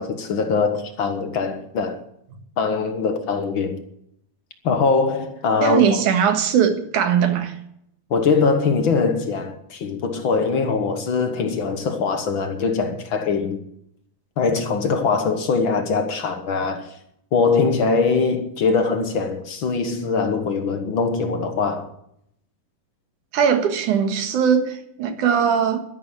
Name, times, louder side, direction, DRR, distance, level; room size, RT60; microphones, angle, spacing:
voice 1, 0.0-2.0 2.6-3.8 4.6-5.8 8.1-13.6 14.4-16.9 17.3-21.9 25.1-25.2, left 4 dB, 55° left, 1.5 m, -22 dB
voice 2, 5.6-7.6 23.3-25.8, right 7 dB, 70° right, 3.0 m, -20 dB
12.5 x 11.0 x 9.8 m
omnidirectional pair, 3.7 m